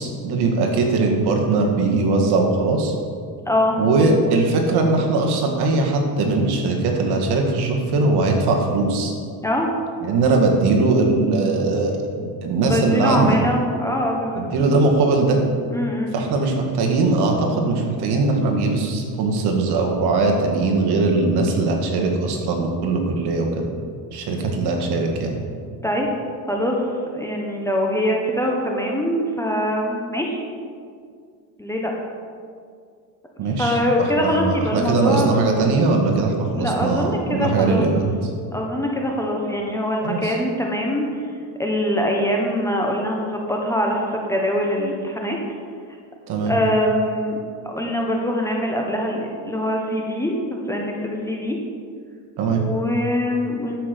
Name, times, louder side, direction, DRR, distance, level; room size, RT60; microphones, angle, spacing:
voice 1, 0.0-2.9 3.8-9.2 10.0-13.4 14.4-15.4 16.1-23.6 24.1-25.4 33.4-38.1 40.0-40.3 46.3-46.5 52.4-52.6, right 3 dB, 60° right, 2 dB, 1.9 m, -20 dB
voice 2, 3.5-3.8 9.4-9.7 12.6-14.7 15.7-16.1 25.8-26.1 26.5-26.8 27.1-30.4 31.6-31.9 33.6-35.4 36.5-37.9 38.5-41.3 41.6-45.4 46.5-47.4 47.6-51.6 52.5-53.8, equal, 5° left, 0 dB, 1.1 m, -23 dB
11.0 x 7.8 x 5.3 m, 2.2 s
cardioid pair, 140°, 44 cm